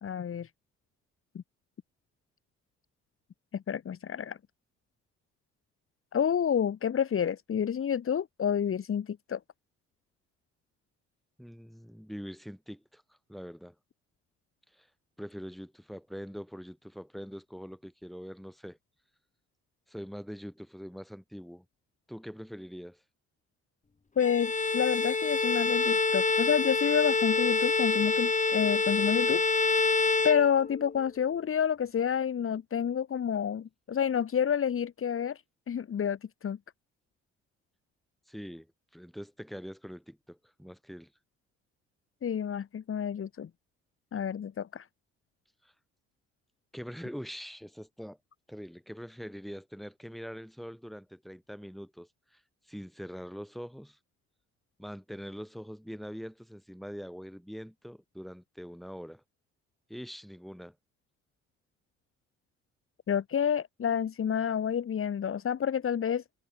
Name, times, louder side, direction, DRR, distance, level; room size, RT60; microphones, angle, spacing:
voice 1, 0.0-0.5 1.3-1.4 3.5-4.4 6.1-9.4 24.2-29.4 30.2-35.4 35.7-36.6 42.2-43.5 44.1-44.9 63.1-66.2, left 8 dB, 45° left, 2.1 m, -29 dB
voice 2, 11.4-13.8 14.7-14.9 15.2-18.8 19.9-21.6 22.1-23.0 38.3-38.7 38.9-41.1 45.6-45.7 46.7-48.2 48.5-52.4 52.7-54.0 54.8-59.2 59.9-60.8, equal, ahead, 7.2 m, -43 dB
Bowed string instrument, 24.2-31.0, left 4 dB, 25° left, 3.2 m, -27 dB
supercardioid pair, 65°, 30 cm